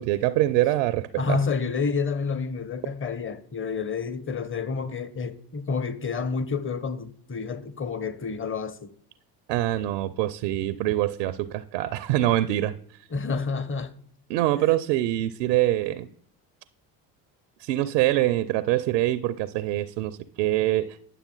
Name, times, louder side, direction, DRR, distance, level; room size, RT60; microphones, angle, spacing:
voice 1, 0.0-1.4 9.5-12.7 14.3-16.1 17.6-21.0, right 15 dB, 80° right, 0.6 m, -24 dB
voice 2, 1.2-8.9 13.1-13.9, left 5 dB, 25° left, 1.0 m, -29 dB
9.9 x 6.8 x 3.8 m
hypercardioid pair, 55°, 48 cm